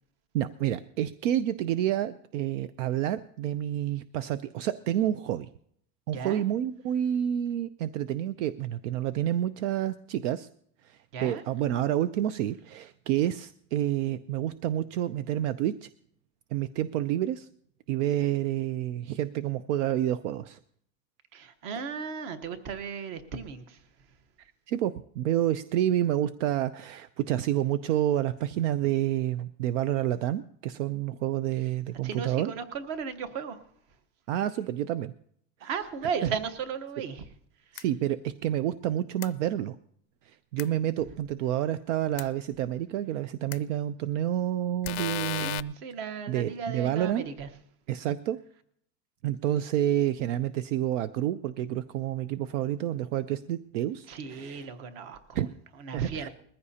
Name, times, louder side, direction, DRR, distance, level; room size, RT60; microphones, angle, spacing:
voice 1, 0.3-5.5 6.1-10.5 10.8-15.9 16.5-17.5 17.9-20.6 24.7-32.5 34.3-35.1 35.6-35.7 37.7-39.8 40.2-45.7 46.3-47.3 47.9-48.4 49.2-54.7 55.3-55.5 55.9-56.3, right 12 dB, 70° right, 14 dB, 0.6 m, -29 dB
voice 2, 21.3-23.8 32.0-33.6 35.6-37.2 37.7-37.8 45.4-47.5 54.1-55.4 55.8-56.3, right 6 dB, 45° right, 10 dB, 1.2 m, -36 dB
sound 1, 37.8-37.9 39.2-39.3 40.6-40.7 42.2-42.3 43.5-43.6 44.8-45.6, left 19 dB, 60° left, 0.5 m, -33 dB
20.5 x 14.5 x 2.8 m, 0.67 s
supercardioid pair, 170°, 37 cm